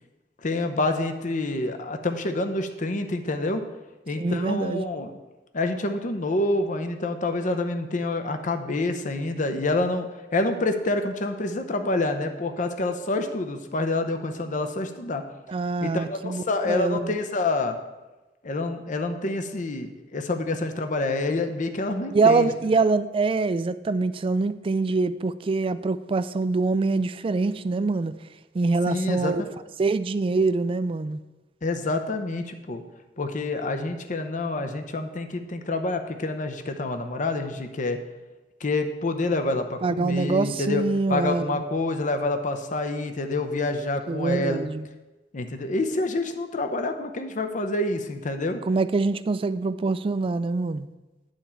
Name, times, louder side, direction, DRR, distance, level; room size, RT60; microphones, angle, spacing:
voice 1, 0.4-3.6 4.1-5.1 5.5-15.2 15.8-17.8 18.4-22.5 28.9-29.3 31.6-32.8 33.2-38.0 38.6-40.8 41.1-44.6 45.3-48.6, left 2 dB, 45° left, 0.7 m, -27 dB
voice 2, 4.2-4.8 15.5-17.1 22.1-28.1 28.5-29.4 29.8-31.2 39.8-41.6 44.1-44.8 48.7-50.9, right 3 dB, 30° right, 0.3 m, -24 dB
9.0 x 4.4 x 7.1 m
head